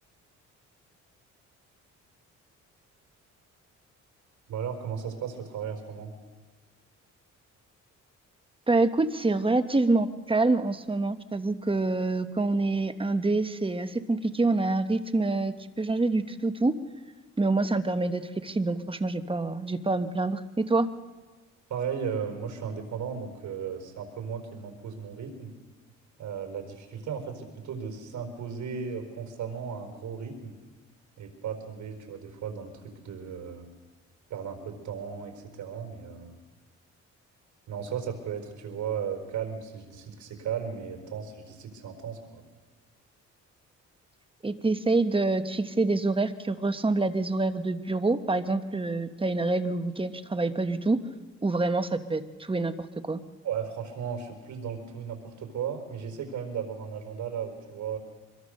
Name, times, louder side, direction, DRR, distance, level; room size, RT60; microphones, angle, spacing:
voice 1, 4.5-6.1 21.7-25.5 26.2-30.6 31.2-32.7 33.0-33.7 34.3-36.4 37.7-42.4 53.4-58.0, right 7 dB, 70° right, 5 dB, 4.5 m, -35 dB
voice 2, 8.7-16.8 17.4-20.9 44.4-51.0 51.4-52.7 53.0-53.2, right 3 dB, 15° right, 9 dB, 1.2 m, -26 dB
25.0 x 22.0 x 6.6 m, 1.3 s
cardioid pair, 90°, 30 cm